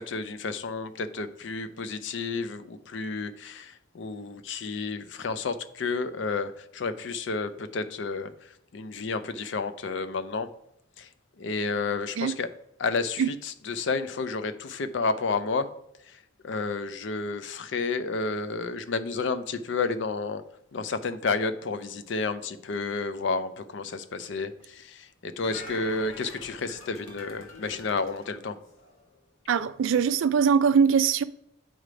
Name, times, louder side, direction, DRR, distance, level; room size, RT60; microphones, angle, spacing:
voice 1, 0.0-8.3 8.7-10.5 11.0-11.1 11.4-12.5 12.8-15.7 16.1-16.2 16.4-20.4 20.7-28.6, left 4 dB, 60° left, 0.4 m, -31 dB
sound 1, 25.4-29.2 29.6-29.7, left 2 dB, 85° left, 1.4 m, -45 dB
voice 2, 29.5-31.2, right 6 dB, 70° right, 0.3 m, -22 dB
7.7 x 3.3 x 5.0 m
head